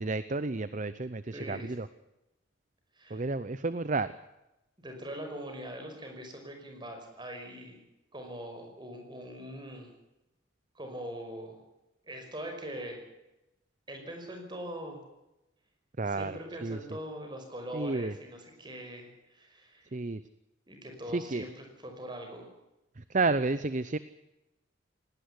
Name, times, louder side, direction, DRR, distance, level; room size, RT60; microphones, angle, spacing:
voice 1, 0.0-1.9 3.1-4.1 16.0-16.8 17.7-18.1 19.9-20.2 21.1-21.5 23.0-24.0, right 3 dB, 40° right, 14 dB, 0.7 m, -31 dB
voice 2, 1.3-1.7 3.0-3.2 4.8-7.8 8.1-9.9 10.8-11.6 12.0-13.0 13.9-15.0 16.1-19.9 20.7-22.5, equal, 25° right, 4 dB, 5.4 m, -42 dB
18.5 x 18.0 x 9.7 m, 0.93 s
head